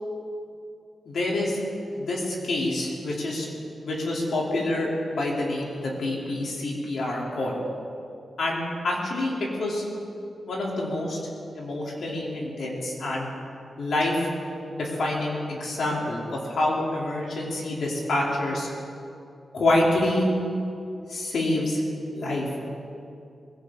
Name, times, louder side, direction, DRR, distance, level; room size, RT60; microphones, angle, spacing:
voice 1, 1.1-1.6 2.0-3.5 3.8-7.6 8.4-9.8 10.5-11.2 11.5-13.3 13.8-14.3 14.7-18.7 19.5-20.3 21.1-21.8 22.1-22.5, left 1 dB, 70° left, -3 dB, 3.6 m, -27 dB
21.5 x 16.0 x 4.0 m, 2.6 s
wide cardioid pair, 130°, 0 cm